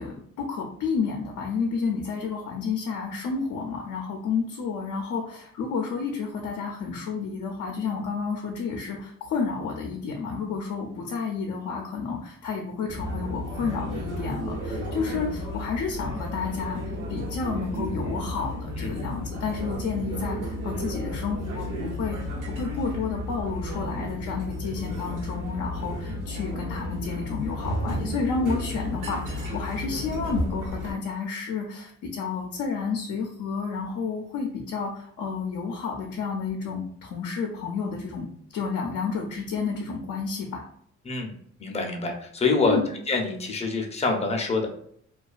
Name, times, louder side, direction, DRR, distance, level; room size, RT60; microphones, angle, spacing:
voice 1, 0.0-38.3 38.5-40.6 42.6-42.9, left 5 dB, 75° left, 1 dB, 0.5 m, -31 dB
sound 1, 12.9-30.9, equal, 75° right, 1.0 m, -33 dB
voice 2, 41.6-42.8 43.1-44.7, left 3 dB, 20° left, 2 dB, 0.5 m, -26 dB
2.3 x 2.3 x 2.4 m, 0.64 s
cardioid pair, 90°, 30 cm